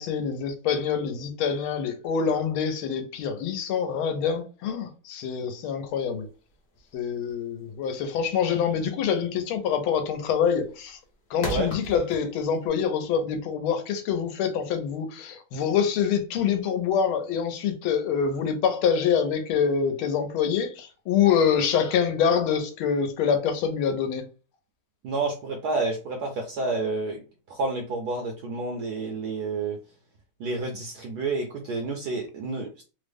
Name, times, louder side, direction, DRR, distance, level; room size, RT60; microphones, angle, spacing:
voice 1, 0.0-6.3 6.9-11.0 11.3-24.3, left 7 dB, 85° left, 1.5 m, -25 dB
sound 1, 5.9-12.7, equal, 45° left, 0.8 m, -39 dB
voice 2, 25.0-27.2 27.5-29.8 30.4-32.8, right 3 dB, 75° right, 0.9 m, -29 dB
3.5 x 2.0 x 3.3 m
omnidirectional pair, 2.3 m